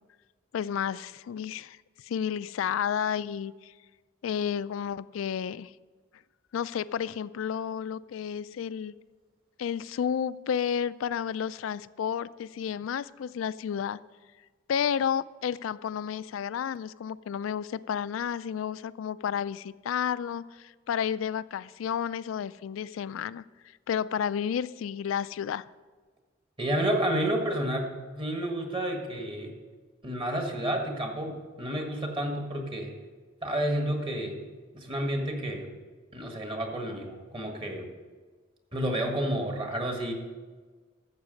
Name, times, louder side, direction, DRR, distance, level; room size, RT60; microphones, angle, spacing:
voice 1, 0.5-3.7 4.2-5.7 6.5-8.9 9.6-14.0 14.7-23.4 23.9-25.6, left 8 dB, 80° left, 17 dB, 0.3 m, -31 dB
voice 2, 26.6-29.5 30.0-32.9 33.4-34.4 34.7-35.7 36.1-37.9 38.7-40.1, right 1 dB, 25° right, 3 dB, 1.5 m, -30 dB
12.0 x 7.5 x 5.2 m, 1.4 s
head